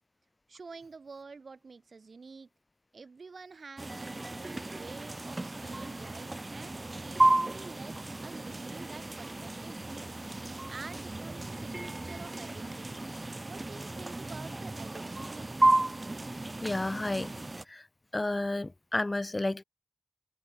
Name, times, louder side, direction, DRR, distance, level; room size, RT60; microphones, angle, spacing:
voice 1, 0.5-2.5 2.9-10.1 10.7-13.0 13.4-15.5, right 4 dB, 65° right, 7.7 m, -48 dB
sound 1, 3.8-17.6, right 2 dB, 30° right, 1.8 m, -33 dB
voice 2, 16.6-17.3 17.6-17.9 18.1-19.6, left 2 dB, 30° left, 3.2 m, -31 dB
wide cardioid pair, 65°, 0 cm